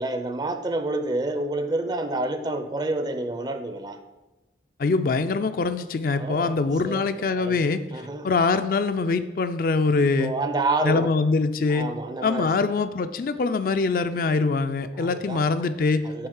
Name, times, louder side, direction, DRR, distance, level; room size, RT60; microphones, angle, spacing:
voice 1, 0.0-4.0 6.1-6.6 6.8-7.1 7.3-7.6 7.9-8.3 10.2-11.1 11.7-12.5 14.9-15.4 16.0-16.3, right 2 dB, 25° right, 8 dB, 0.4 m, -28 dB
voice 2, 4.8-7.8 8.2-10.3 10.8-11.9 12.2-16.1, left 4 dB, 50° left, 10 dB, 0.4 m, -23 dB
7.8 x 3.2 x 6.3 m, 1.1 s
head